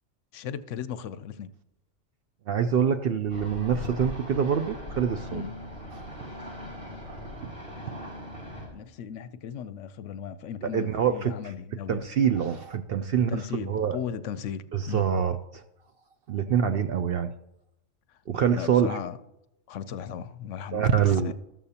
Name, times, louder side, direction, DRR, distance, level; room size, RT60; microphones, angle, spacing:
voice 1, 0.3-1.5 5.3-5.5 8.7-12.0 13.3-15.1 18.5-19.2 19.7-20.9 21.2-21.3, left 8 dB, 70° left, 0.9 m, -36 dB
voice 2, 2.5-5.4 5.9-6.0 7.1-7.5 10.6-11.3 11.9-14.0 14.7-15.6 16.3-17.3 18.3-19.0 20.7-21.3, right 8 dB, 60° right, 0.6 m, -25 dB
sound 1, 3.3-8.7, equal, 45° right, 5.6 m, -39 dB
13.5 x 13.0 x 2.8 m
omnidirectional pair, 1.4 m